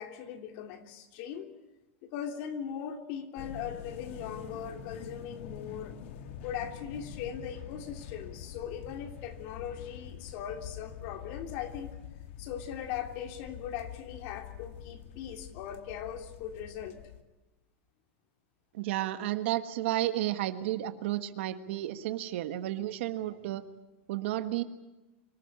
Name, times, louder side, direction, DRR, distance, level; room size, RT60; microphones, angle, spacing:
voice 1, 0.0-1.5 2.0-6.0 6.4-11.9 12.4-17.0, left 9 dB, 50° left, 4 dB, 3.2 m, -39 dB
sound 1, 3.4-17.2, left 8 dB, 70° left, 2.0 m, -45 dB
voice 2, 18.7-23.6 24.1-24.6, right 14 dB, 70° right, 10 dB, 1.6 m, -32 dB
25.5 x 14.5 x 9.8 m, 1.1 s
supercardioid pair, 155°, 7 cm